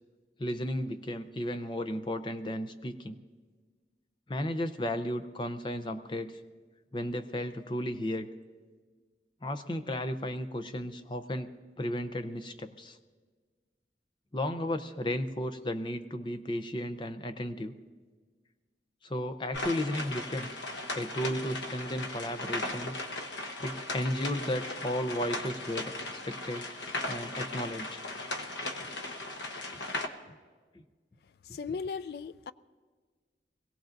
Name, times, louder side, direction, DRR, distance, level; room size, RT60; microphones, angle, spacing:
voice 1, 0.4-3.2 4.3-6.3 6.9-8.3 9.4-11.5 11.8-13.0 14.3-17.7 19.0-20.5 20.9-23.0 23.6-26.7 27.1-28.0 29.7-29.8 30.7-30.8, left 1 dB, 25° left, 0.6 m, -34 dB
sound 1, 19.5-30.1, left 2 dB, 90° left, 1.1 m, -37 dB
voice 2, 31.5-32.5, left 5 dB, 60° left, 0.3 m, -37 dB
25.0 x 17.0 x 2.6 m
head